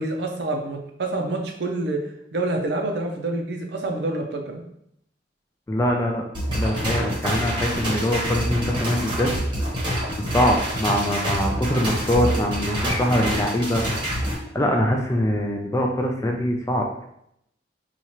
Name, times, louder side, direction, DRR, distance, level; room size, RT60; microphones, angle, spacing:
voice 1, 0.0-2.0 2.3-4.6, right 2 dB, 65° right, 2 dB, 0.5 m, -27 dB
voice 2, 5.7-6.2 6.5-9.3 10.2-13.8 14.5-16.9, equal, 15° left, 1 dB, 0.4 m, -23 dB
sound 1, 6.3-14.3, equal, 25° right, 1.0 m, -26 dB
4.2 x 2.4 x 2.9 m, 0.76 s
head